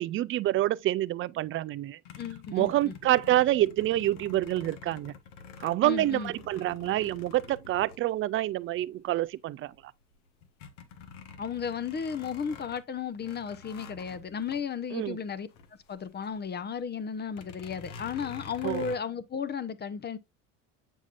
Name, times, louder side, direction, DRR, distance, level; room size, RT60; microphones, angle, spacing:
voice 1, 0.0-2.0 2.5-5.1 5.6-9.9 14.9-15.2 18.6-18.9, right 14 dB, 35° right, 0.4 m, -27 dB
sound 1, 2.1-8.7 9.3-9.4 9.7-16.4 16.7-16.8 17.3-19.0, left 6 dB, 75° left, 1.0 m, -48 dB
voice 2, 2.2-2.9 5.8-6.3 11.4-15.5 15.9-20.2, left 7 dB, 25° left, 0.7 m, -34 dB
7.2 x 5.5 x 2.5 m
hypercardioid pair, 70°, 38 cm